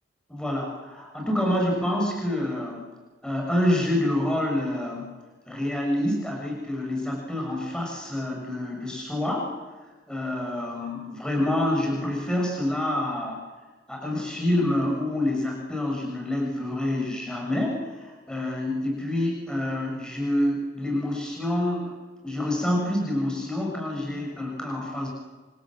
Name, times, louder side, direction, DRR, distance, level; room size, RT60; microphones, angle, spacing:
voice 1, 0.3-2.8 3.2-5.1 5.5-9.5 10.1-13.4 13.9-21.9 22.2-25.1, left 1 dB, 5° left, -2 dB, 6.4 m, -27 dB
28.5 x 26.5 x 7.7 m, 1.3 s
head